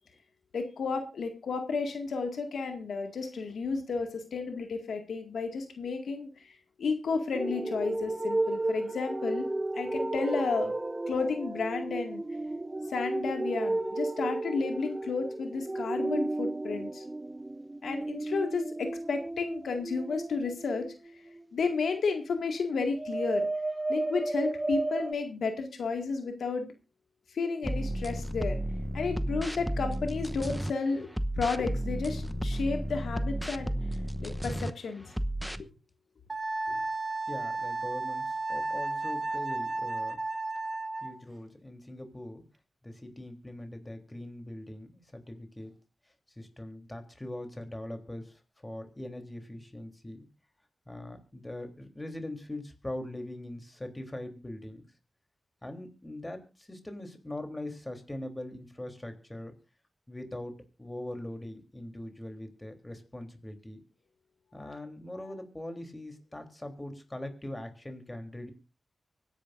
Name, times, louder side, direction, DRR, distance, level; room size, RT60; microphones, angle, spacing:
voice 1, 0.5-9.5 9.7-10.7 11.1-12.2 12.9-17.0 17.8-20.9 21.5-23.5 23.9-26.7 27.3-28.6 28.9-31.1 31.4-33.7 34.2-35.1 36.7-36.8 64.6-64.8, left 4 dB, 90° left, 5 dB, 2.0 m, -32 dB
sound 1, 7.3-21.4 23.0-25.1, right 2 dB, 25° right, 0.6 m, -33 dB
sound 2, 27.6-30.7 31.1-34.7 35.1-35.6, right 1 dB, ahead, 0.9 m, -33 dB
Wind instrument woodwind instrument, 36.3-41.2, right 3 dB, 45° right, 2.4 m, -33 dB
voice 2, 37.3-40.2 41.0-42.4 42.8-45.7 46.4-50.3 50.9-54.8 55.6-59.5 60.1-63.8 64.5-68.5, left 1 dB, 15° left, 6 dB, 3.4 m, -41 dB
24.5 x 10.5 x 2.6 m, 0.30 s
cardioid pair, 60°, 0 cm